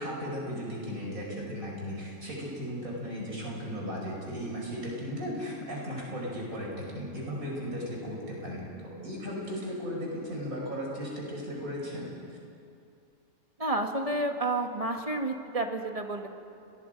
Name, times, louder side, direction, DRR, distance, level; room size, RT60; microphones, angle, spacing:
voice 1, 0.0-12.4, equal, 70° right, -3 dB, 5.9 m, -36 dB
voice 2, 13.6-16.3, right 2 dB, 25° right, 3 dB, 1.7 m, -30 dB
29.5 x 20.5 x 5.3 m, 2.5 s
omnidirectional pair, 1.5 m